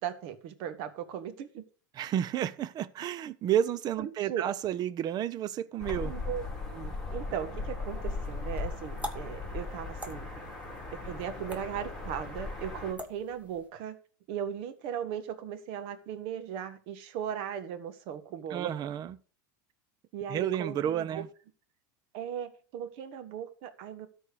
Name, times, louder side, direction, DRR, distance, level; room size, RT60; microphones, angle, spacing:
voice 1, 0.0-1.6 4.0-4.4 6.0-6.4 6.7-10.3 11.0-14.0 14.3-18.7 20.1-21.2 22.1-24.1, right 9 dB, 60° right, 1.7 m, -37 dB
voice 2, 2.0-6.1 18.5-19.1 20.3-21.3, right 10 dB, 40° right, 0.7 m, -31 dB
sound 1, 5.8-12.9, left 3 dB, 5° left, 4.0 m, -38 dB
sound 2, 7.9-13.7, equal, 15° right, 2.0 m, -47 dB
13.0 x 4.5 x 6.8 m
hypercardioid pair, 105°, 10 cm